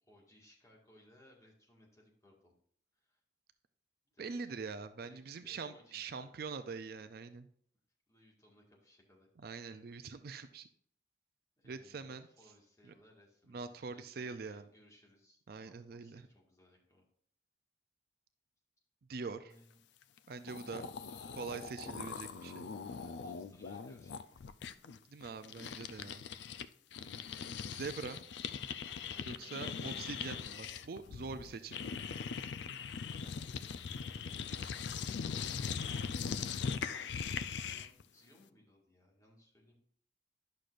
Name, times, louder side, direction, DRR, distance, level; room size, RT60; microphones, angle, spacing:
voice 1, 0.0-2.5 2.9-3.2 4.1-4.5 5.0-6.3 8.1-9.3 11.6-17.1 19.4-19.8 20.6-21.5 21.8-22.3 22.6-22.7 23.0-24.4 24.9-25.0 29.0-30.2 33.2-33.8 34.0-36.0 37.2-39.7, left 1 dB, 15° left, -3 dB, 1.8 m, -64 dB
voice 2, 4.2-7.5 9.4-10.7 11.6-12.3 12.9-13.0 13.5-14.7 15.5-16.3 19.1-19.5 20.3-20.8 21.4-22.7 25.1-26.3 27.7-28.2 29.3-31.8, right 4 dB, 55° right, 11 dB, 0.4 m, -44 dB
sound 1, 20.2-20.3 20.4-26.7 26.9-38.0, left 6 dB, 70° left, 0.4 m, -41 dB
10.5 x 6.4 x 2.5 m, 0.62 s
head